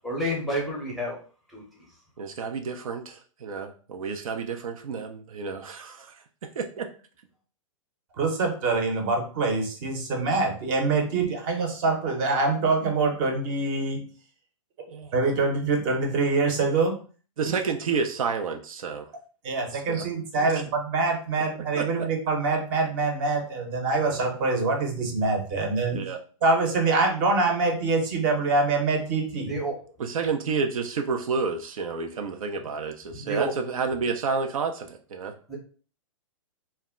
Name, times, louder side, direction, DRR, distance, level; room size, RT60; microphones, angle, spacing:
voice 1, 0.0-1.2 1.5-1.6 29.4-29.8 33.2-33.5 35.5-35.6, right 1 dB, ahead, -4 dB, 0.6 m, -29 dB
voice 2, 2.2-6.1 6.6-6.9 14.9-15.1 17.4-19.1 19.7-20.0 20.4-20.6 21.8-22.1 25.9-26.2 30.0-35.3, right 5 dB, 80° right, 5 dB, 0.5 m, -30 dB
voice 3, 8.2-14.0 15.1-16.9 19.4-26.0 26.4-29.5, right 3 dB, 35° right, 3 dB, 0.7 m, -25 dB
2.2 x 2.0 x 3.5 m, 0.39 s
hypercardioid pair, 140°, 18 cm